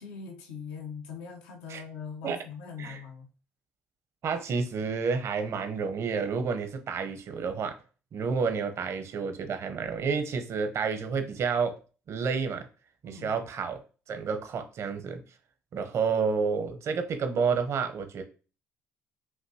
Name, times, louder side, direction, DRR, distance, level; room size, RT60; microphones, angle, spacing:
voice 1, 0.0-3.3 13.0-13.4, left 6 dB, 85° left, 2 dB, 0.9 m, -41 dB
voice 2, 4.2-7.7 8.1-11.7 12.1-12.7 13.0-13.8 14.1-15.2 15.7-18.2, right 5 dB, 55° right, 7 dB, 0.8 m, -30 dB
5.8 x 2.6 x 2.8 m, 0.35 s
supercardioid pair, 65°, 6 cm